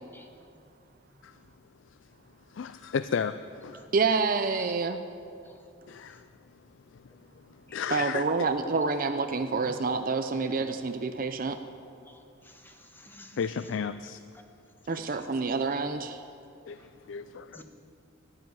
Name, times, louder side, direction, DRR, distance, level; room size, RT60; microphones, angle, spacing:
voice 1, 2.5-3.9 5.9-6.6 6.9-8.2 13.4-14.2 14.9-15.1 16.7-17.6, left 6 dB, 70° left, 13 dB, 0.4 m, -35 dB
voice 2, 3.9-5.0 7.9-11.6 14.9-16.2, right 4 dB, 45° right, 8 dB, 0.6 m, -28 dB
voice 3, 7.7-8.0 8.7-9.0 9.6-9.8 12.1-13.5 15.1-15.5 16.8-16.9 17.5-17.6, left 1 dB, 10° left, 4 dB, 1.4 m, -51 dB
12.0 x 12.0 x 9.4 m, 2.5 s
head